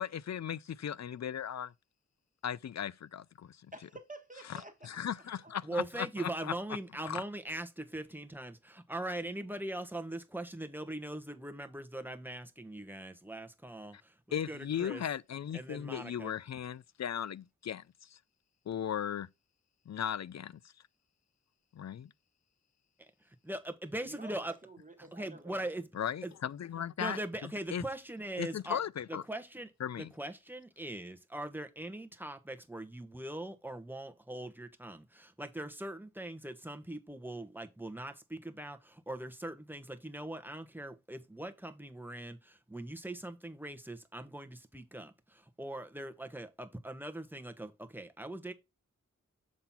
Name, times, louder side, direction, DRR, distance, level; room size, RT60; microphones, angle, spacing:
voice 1, 0.0-1.7 2.4-3.6 4.5-4.6 4.8-6.5 7.0-7.2 14.3-17.8 18.1-18.2 18.7-19.3 19.9-20.6 21.7-22.1 25.9-27.2 27.7-27.8 28.4-29.2 29.8-30.1, left 9 dB, 60° left, 0.5 m, -37 dB
voice 2, 3.7-5.0 5.4-5.5 24.0-25.7, right 2 dB, 25° right, 1.6 m, -50 dB
voice 3, 5.6-15.0 15.5-16.3 23.0-23.1 23.4-24.5 25.1-25.9 26.2-26.3 27.0-28.8 29.1-29.7 30.0-48.5, right 1 dB, 5° right, 1.2 m, -41 dB
7.4 x 3.8 x 4.3 m
cardioid pair, 45°, 30 cm